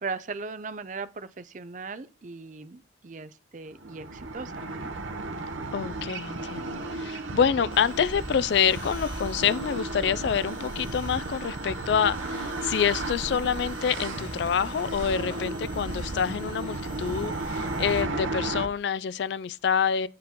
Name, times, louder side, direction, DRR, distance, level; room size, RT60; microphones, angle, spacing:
voice 1, 0.0-4.9, right 4 dB, 40° right, 0.5 m, -38 dB
sound 1, 3.7-18.7, right 2 dB, 85° right, 0.8 m, -34 dB
voice 2, 5.7-20.1, left 7 dB, 60° left, 0.3 m, -27 dB
sound 2, 7.7-18.0, left 1 dB, 25° left, 2.7 m, -43 dB
7.4 x 4.7 x 3.6 m
head